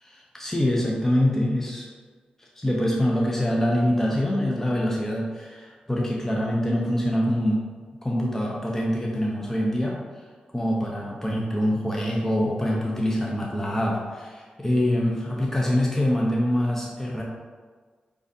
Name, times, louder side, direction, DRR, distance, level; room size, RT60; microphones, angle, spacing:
voice 1, 0.1-1.9 2.4-7.7 8.0-10.0 10.5-17.2, equal, 10° left, -3 dB, 0.9 m, -25 dB
4.9 x 3.5 x 2.8 m, 1.5 s
supercardioid pair, 45°, 3 cm